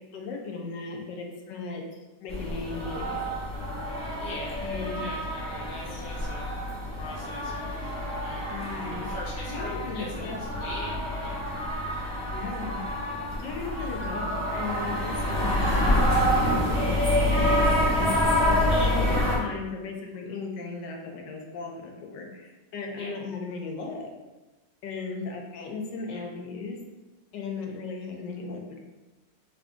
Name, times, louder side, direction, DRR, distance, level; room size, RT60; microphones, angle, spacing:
voice 1, 0.1-1.8 2.2-3.3 4.6-5.0 8.5-9.1 9.5-10.4 12.3-12.8 13.4-16.8 17.3-17.6 18.0-24.1 24.8-26.8 27.3-28.8, left 4 dB, 80° left, 1 dB, 1.2 m, -36 dB
sound 1, 2.3-19.4, left 1 dB, 10° left, 0.4 m, -27 dB
voice 2, 4.2-6.5 7.0-11.5 17.6-18.4 22.9-23.1 26.1-26.2, left 1 dB, 50° left, -4 dB, 0.7 m, -42 dB
3.4 x 2.5 x 3.4 m, 1.1 s
omnidirectional pair, 1.9 m